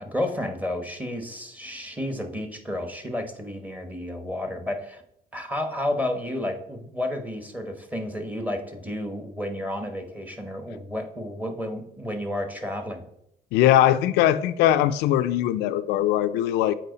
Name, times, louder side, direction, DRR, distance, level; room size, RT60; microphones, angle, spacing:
voice 1, 0.0-5.0 5.3-13.0, left 1 dB, 10° right, 1.0 m, -31 dB
voice 2, 13.5-16.8, left 12 dB, 90° left, 0.4 m, -21 dB
7.4 x 4.5 x 3.9 m
cardioid pair, 110°, 17 cm